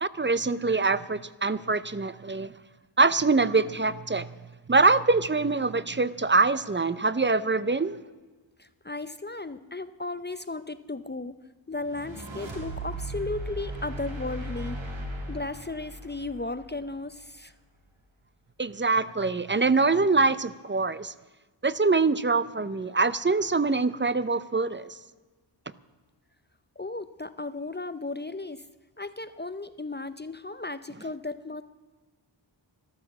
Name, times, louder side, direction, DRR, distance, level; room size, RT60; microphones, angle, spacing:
voice 1, 0.0-2.5 3.0-4.3 4.7-8.0 18.6-21.1 21.6-25.0, right 3 dB, 25° right, 16 dB, 0.5 m, -24 dB
voice 2, 8.6-11.4 11.7-14.8 15.3-17.5 26.8-28.7 29.0-31.6, left 2 dB, 20° left, 12 dB, 0.6 m, -35 dB
sound 1, 11.8-17.1, right 1 dB, 65° right, 2.3 m, -37 dB
12.5 x 12.5 x 7.2 m, 1.3 s
wide cardioid pair, 55°, 48 cm